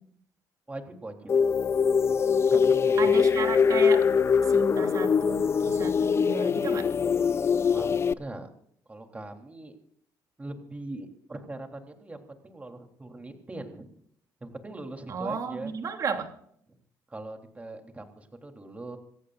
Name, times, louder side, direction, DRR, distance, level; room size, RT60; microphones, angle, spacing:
voice 1, 0.7-1.3 2.5-3.1 7.7-8.5 8.9-9.7 10.4-13.9 14.4-15.8 16.7-16.8 17.1-19.0, right 2 dB, 20° right, 4 dB, 3.4 m, -41 dB
sound 1, 1.3-8.1, left 6 dB, 35° left, 0.6 m, -23 dB
voice 2, 3.0-4.1 4.5-6.9 15.1-16.3, right 5 dB, 50° right, 5 dB, 2.9 m, -33 dB
28.0 x 15.0 x 2.6 m, 0.67 s
cardioid pair, 95°, 7 cm